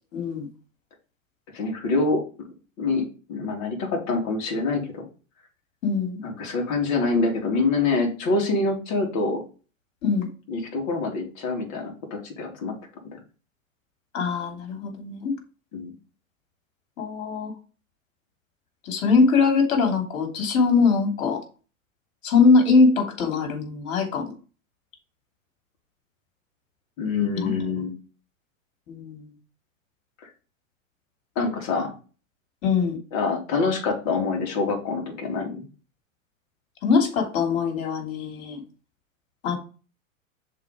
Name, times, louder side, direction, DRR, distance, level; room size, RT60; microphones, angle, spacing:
voice 1, 0.1-0.5 5.8-6.2 10.0-10.3 14.1-15.3 17.0-17.5 18.8-21.4 22.2-24.3 27.3-27.7 28.9-29.3 32.6-33.0 36.8-38.6 39.4-39.6, left 4 dB, 65° left, 4 dB, 2.9 m, -22 dB
voice 2, 1.5-2.2 2.8-5.0 6.2-9.4 10.5-12.7 15.7-15.9 27.0-27.9 30.2-30.3 31.4-31.9 33.1-35.7, left 3 dB, 40° left, 2 dB, 2.6 m, -25 dB
6.6 x 3.9 x 4.9 m, 0.35 s
hypercardioid pair, 115°, 41 cm